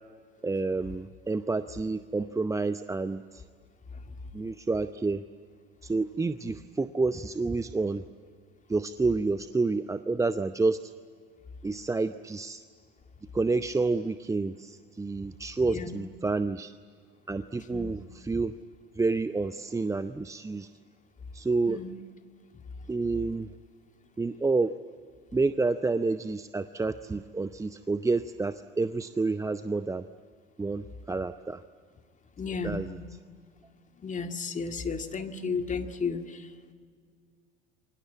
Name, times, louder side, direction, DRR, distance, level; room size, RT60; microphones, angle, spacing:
voice 1, 0.4-3.4 4.3-5.2 5.8-8.0 8.7-10.9 11.6-12.6 13.3-16.7 17.3-18.6 19.0-20.7 21.3-21.8 22.9-23.5 24.2-24.8 25.3-30.1 30.6-31.6 32.6-33.0, right 3 dB, 10° right, 12 dB, 0.7 m, -29 dB
voice 2, 15.6-16.0 17.7-17.9 21.7-21.9 32.4-32.9 34.0-36.7, left 5 dB, 25° left, 6 dB, 2.0 m, -34 dB
28.0 x 23.5 x 8.5 m, 2.1 s
figure-of-eight pair, 65°, 29 cm